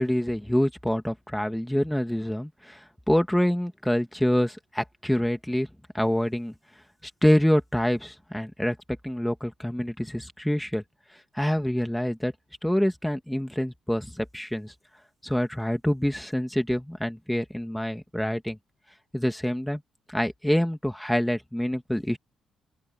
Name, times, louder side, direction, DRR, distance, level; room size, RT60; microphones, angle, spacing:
voice 1, 0.0-2.8 3.1-5.7 5.9-6.5 7.0-8.8 9.0-10.8 11.3-12.3 12.6-14.7 15.2-18.6 19.1-19.8 20.1-22.2, equal, 5° left, 2.5 m, -26 dB
open air
cardioid pair, 90°, 0 cm